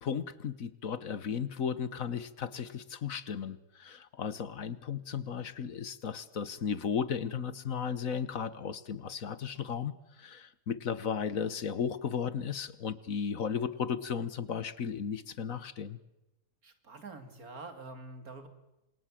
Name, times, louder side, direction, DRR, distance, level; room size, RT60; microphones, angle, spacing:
voice 1, 0.0-9.9 10.2-16.0, left 7 dB, 65° left, 15 dB, 1.6 m, -35 dB
voice 2, 16.6-18.5, right 3 dB, 70° right, 8 dB, 3.3 m, -46 dB
29.0 x 26.5 x 7.7 m, 0.96 s
omnidirectional pair, 1.6 m